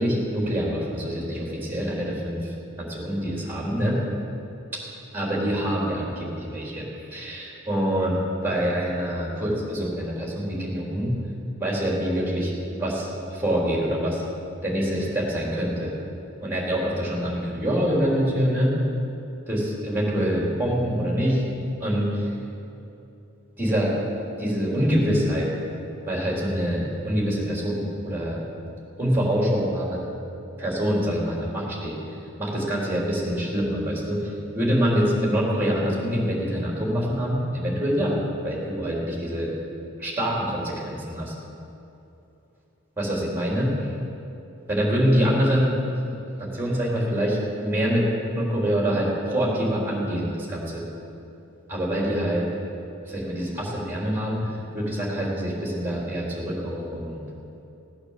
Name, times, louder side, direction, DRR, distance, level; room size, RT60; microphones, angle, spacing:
voice 1, 0.0-4.0 5.1-11.1 11.6-14.2 14.6-15.9 16.4-18.7 19.5-21.4 21.8-22.4 23.6-23.9 24.4-25.5 26.1-28.4 29.0-30.0 30.6-38.2 38.4-39.5 40.0-41.3 43.0-43.7 44.7-45.7 46.4-48.1 48.3-50.8 51.7-52.5 53.1-57.2, equal, 10° right, -4 dB, 3.9 m, -25 dB
16.5 x 8.8 x 7.5 m, 2.8 s
head